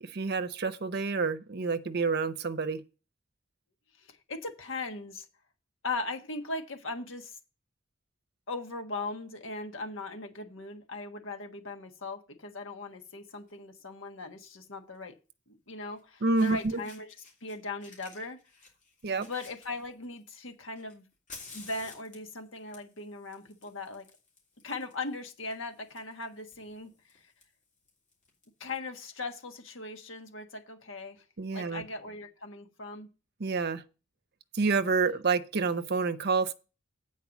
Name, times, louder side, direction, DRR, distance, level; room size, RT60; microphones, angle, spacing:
voice 1, 0.0-2.8 16.2-16.8 19.0-19.3 31.4-31.8 33.4-33.8 34.5-36.5, right 4 dB, 55° right, 0.7 m, -28 dB
voice 2, 4.0-5.3 5.8-7.4 8.5-15.1 15.5-17.1 17.4-18.4 19.2-21.0 21.5-24.1 24.6-27.3 28.6-31.2 31.5-33.1, left 3 dB, 75° left, 1.4 m, -39 dB
Fire, 13.3-13.5 14.9-15.0 16.0-16.1 16.3-17.5 17.8-20.2 20.8-28.4, left 4 dB, 40° left, 3.1 m, -53 dB
8.5 x 4.7 x 7.1 m
head